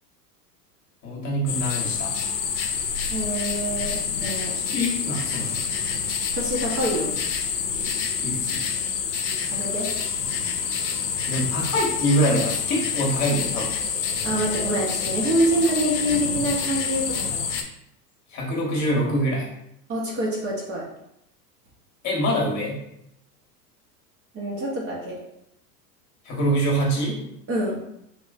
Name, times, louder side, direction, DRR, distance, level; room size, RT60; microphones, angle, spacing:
voice 1, 1.0-2.1 4.5-5.7 8.2-8.6 11.3-13.8 18.3-19.5 22.0-22.8 26.2-27.2, equal, 35° left, -2 dB, 1.1 m, -25 dB
sound 1, 1.5-17.6, left 6 dB, 90° left, 0.6 m, -27 dB
voice 2, 3.1-4.5 6.3-7.2 9.5-9.9 14.2-17.4 19.9-20.8 24.3-25.2 27.5-27.8, right 1 dB, 30° right, -3 dB, 1.0 m, -26 dB
3.4 x 3.0 x 2.5 m, 0.78 s
hypercardioid pair, 100°, 49 cm